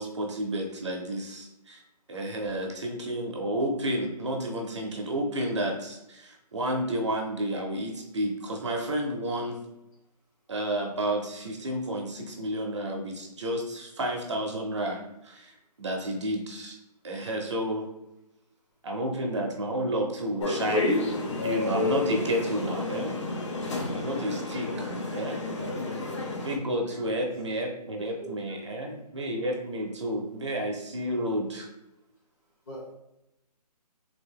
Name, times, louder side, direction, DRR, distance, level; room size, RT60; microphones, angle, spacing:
voice 1, 0.0-1.8 2.1-9.6 10.5-16.8 17.0-17.8 18.8-20.9 21.4-23.2 23.9-25.4 26.4-31.7, right 1 dB, 45° right, 2 dB, 0.6 m, -31 dB
sound 1, 20.4-26.6, left 2 dB, 45° left, 0.6 m, -30 dB
voice 2, 28.0-28.6 32.7-32.9, right 2 dB, 30° left, -4 dB, 1.1 m, -43 dB
3.6 x 2.5 x 3.5 m, 0.88 s
hypercardioid pair, 165°, 21 cm